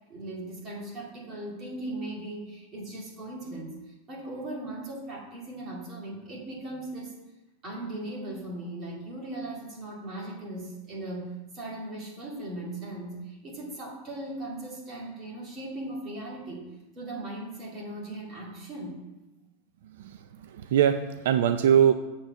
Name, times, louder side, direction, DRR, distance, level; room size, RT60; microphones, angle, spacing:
voice 1, 0.1-7.1 7.6-16.7 16.9-19.0, right 1 dB, 25° right, -3 dB, 2.2 m, -38 dB
voice 2, 19.8-21.9, right 9 dB, 75° right, 10 dB, 0.4 m, -23 dB
7.6 x 4.4 x 6.9 m, 1.1 s
supercardioid pair, 170°, 0 cm